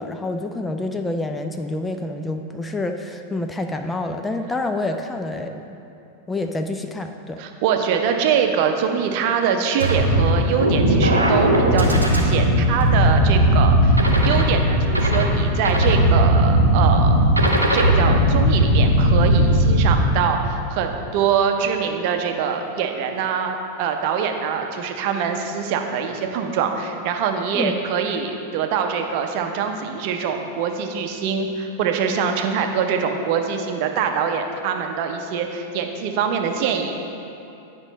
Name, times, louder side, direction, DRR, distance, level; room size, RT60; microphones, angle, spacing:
voice 1, 0.0-5.8 6.3-7.4 27.5-27.7, left 2 dB, 10° left, 5 dB, 0.4 m, -27 dB
voice 2, 7.4-17.2 17.7-36.9, right 7 dB, 45° right, 5 dB, 0.7 m, -24 dB
sound 1, 9.8-20.0, right 1 dB, 85° right, 0.8 m, -17 dB
9.8 x 5.2 x 4.0 m, 2.8 s
figure-of-eight pair, 90°, 0 cm